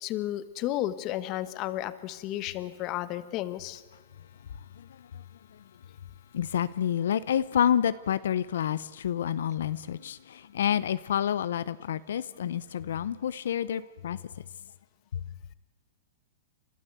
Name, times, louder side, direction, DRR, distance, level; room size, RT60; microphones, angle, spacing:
voice 1, 0.0-3.8, left 14 dB, 35° left, 1.1 m, -33 dB
voice 2, 4.8-5.2 5.5-5.6 6.3-14.2 15.1-15.2, left 9 dB, 80° left, 0.6 m, -29 dB
30.0 x 13.0 x 8.2 m
hypercardioid pair, 150°, 0 cm